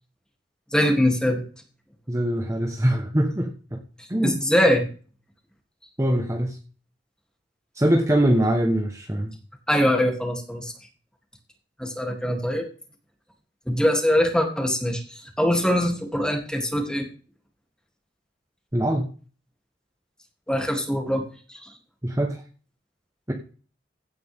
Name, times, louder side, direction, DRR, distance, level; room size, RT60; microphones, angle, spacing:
voice 1, 0.7-1.4 4.2-4.9 9.7-10.7 11.8-12.7 13.7-17.0 20.5-21.2 21.5-21.7, left 1 dB, 5° left, 2 dB, 3.0 m, -22 dB
voice 2, 2.1-3.8 4.1-4.4 6.0-6.6 7.7-9.4 18.7-19.1 22.0-22.4 23.3-23.4, right 1 dB, 15° right, 2 dB, 1.3 m, -23 dB
16.5 x 10.5 x 3.7 m, 0.39 s
head